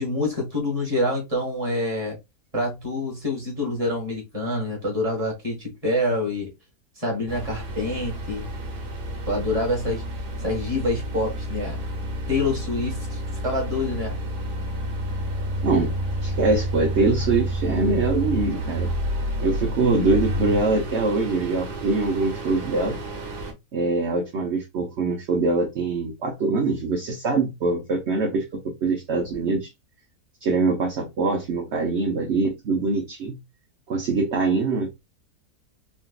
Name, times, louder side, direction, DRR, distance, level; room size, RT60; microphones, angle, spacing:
voice 1, 0.0-2.2 2.5-6.5 6.9-8.5 9.3-10.0 10.4-11.8 12.3-14.2, left 1 dB, 25° right, 1.6 m, -26 dB
sound 1, 7.3-23.5, equal, 80° right, 1.5 m, -30 dB
voice 2, 15.6-15.9 16.2-18.9 19.4-23.0 23.7-28.4 28.8-29.7 30.4-33.4 33.9-34.9, right 3 dB, 55° right, 0.9 m, -23 dB
3.8 x 2.4 x 2.3 m
omnidirectional pair, 1.7 m